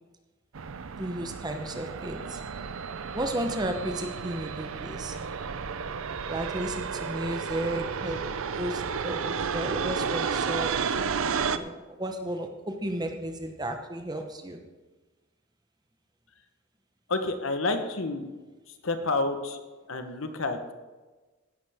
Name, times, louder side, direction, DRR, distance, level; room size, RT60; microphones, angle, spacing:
sound 1, 0.5-11.6, right 6 dB, 65° right, 0.6 m, -32 dB
voice 1, 1.0-2.4 3.1-5.2 6.3-8.2 8.6-10.7 11.2-14.6, right 1 dB, 20° right, 5 dB, 1.0 m, -33 dB
voice 2, 17.1-18.3 18.8-19.6 19.9-20.7, left 3 dB, 65° left, 7 dB, 1.2 m, -29 dB
16.0 x 11.0 x 3.6 m, 1.2 s
head